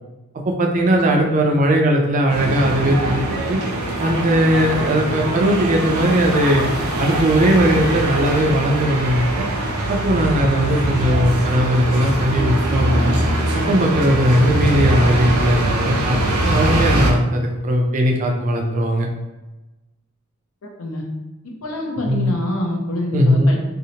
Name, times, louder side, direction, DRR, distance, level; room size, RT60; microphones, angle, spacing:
voice 1, 0.4-3.2 3.5-3.6 4.0-6.6 7.0-9.5 9.9-13.2 13.7-16.2 16.4-19.1 22.1-22.3 23.1-23.5, equal, 35° right, 1 dB, 0.3 m, -18 dB
sound 1, 2.3-17.1, right 1 dB, 90° right, 0.5 m, -22 dB
voice 2, 21.4-23.6, left 1 dB, 80° left, 0 dB, 0.6 m, -26 dB
2.7 x 2.0 x 2.7 m, 1.1 s
head